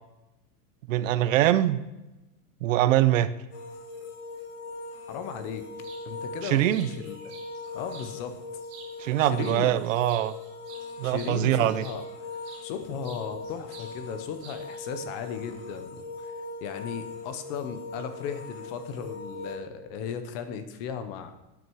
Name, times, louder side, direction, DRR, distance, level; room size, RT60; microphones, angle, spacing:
voice 1, 0.9-1.8 2.6-3.3 6.4-6.9 9.0-10.3 11.0-11.8, right 13 dB, 60° right, 15 dB, 0.8 m, -23 dB
sound 1, 3.5-19.6, left 3 dB, 45° left, 2.5 m, -40 dB
voice 2, 5.1-5.6 6.0-7.1 7.7-8.4 9.2-9.7 11.0-12.0 12.6-16.3 16.6-21.3, left 7 dB, 25° left, 10 dB, 0.8 m, -36 dB
sound 2, 5.8-6.0 6.5-8.1 8.6-9.1 9.4-12.7 13.0-13.9 14.2-14.9, right 6 dB, 40° right, 2.4 m, -49 dB
12.5 x 9.6 x 4.7 m, 1.0 s
supercardioid pair, 180°, 45 cm